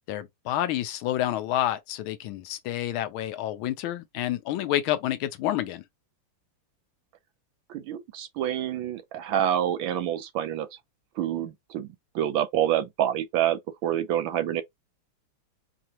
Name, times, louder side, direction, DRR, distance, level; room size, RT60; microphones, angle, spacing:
voice 1, 0.1-5.8, left 12 dB, 75° left, 1.3 m, -29 dB
voice 2, 7.7-10.7 11.2-11.9 12.1-14.6, right 11 dB, 75° right, 1.3 m, -27 dB
4.8 x 2.5 x 2.9 m
omnidirectional pair, 2.4 m